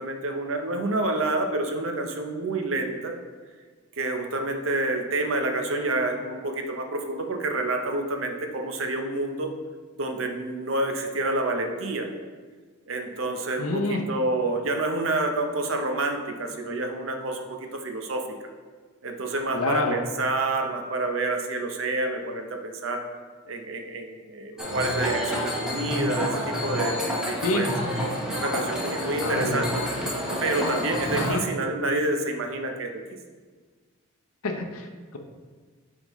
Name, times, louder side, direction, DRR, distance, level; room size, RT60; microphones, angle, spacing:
voice 1, 0.0-3.1 4.0-9.5 10.0-12.1 12.9-18.2 19.0-23.0 23.4-27.7 28.3-29.7 30.4-32.9, right 2 dB, 60° right, 4 dB, 0.7 m, -28 dB
voice 2, 13.6-14.0 19.5-20.0 27.4-27.6 29.2-29.7 31.1-31.4 34.4-35.2, left 2 dB, 80° left, 3 dB, 0.7 m, -28 dB
sound 1, 24.6-31.3, equal, 5° right, 0.9 m, -29 dB
8.9 x 3.6 x 3.0 m, 1.5 s
head